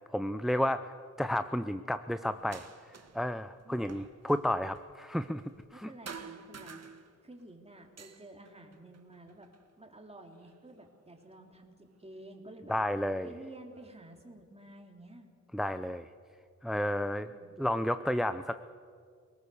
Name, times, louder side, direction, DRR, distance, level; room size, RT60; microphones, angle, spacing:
voice 1, 0.1-0.9 1.2-5.4 5.7-5.9 12.7-13.3 15.5-16.1 16.6-17.3 17.6-18.6, left 1 dB, ahead, 11 dB, 0.5 m, -32 dB
sound 1, 2.4-3.3 3.6-5.8 6.1-7.4 7.8-9.7 10.3-11.2 12.2-12.3 12.9-13.9, right 5 dB, 50° right, 1.7 m, -50 dB
voice 2, 3.6-4.0 5.7-6.8 7.2-9.5 9.8-12.7 13.2-15.3 17.2-17.5, right 1 dB, 20° right, 3 dB, 3.2 m, -51 dB
26.5 x 19.0 x 7.0 m, 2.2 s
wide cardioid pair, 90°, 32 cm